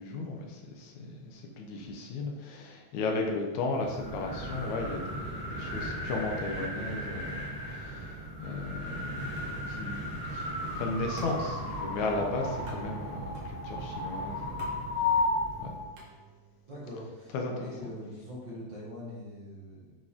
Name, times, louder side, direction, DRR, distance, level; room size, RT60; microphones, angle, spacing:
voice 1, 0.0-14.6 15.1-15.2 15.6-15.7 17.3-17.7, left 3 dB, 75° left, 2 dB, 2.2 m, -35 dB
sound 1, 3.7-15.9, left 1 dB, 5° left, 1.9 m, -35 dB
sound 2, 9.4-16.7, right 5 dB, 90° right, 3.1 m, -49 dB
voice 2, 16.7-20.0, left 1 dB, 45° right, -6 dB, 1.8 m, -43 dB
8.4 x 5.2 x 3.6 m, 1.2 s
omnidirectional pair, 3.4 m